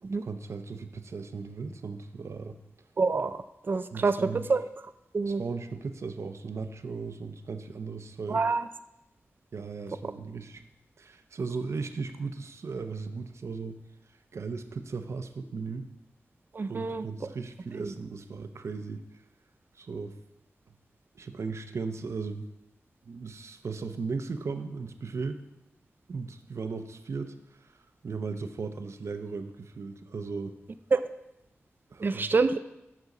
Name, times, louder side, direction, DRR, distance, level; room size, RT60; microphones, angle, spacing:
voice 1, 0.0-2.6 3.9-4.4 5.2-8.4 9.5-10.6 11.0-13.8 14.3-15.9 16.7-19.0 19.7-20.2 21.1-22.5 23.0-25.4 26.1-27.8 28.0-30.6 31.9-32.3, right 4 dB, 75° right, 8 dB, 0.7 m, -37 dB
voice 2, 3.0-4.6 5.1-5.4 8.3-8.7 16.5-17.1 17.8-17.9 30.9-31.0 32.0-32.6, right 4 dB, 45° right, 11 dB, 0.4 m, -27 dB
6.7 x 6.2 x 7.1 m, 0.90 s
wide cardioid pair, 100°, 5 cm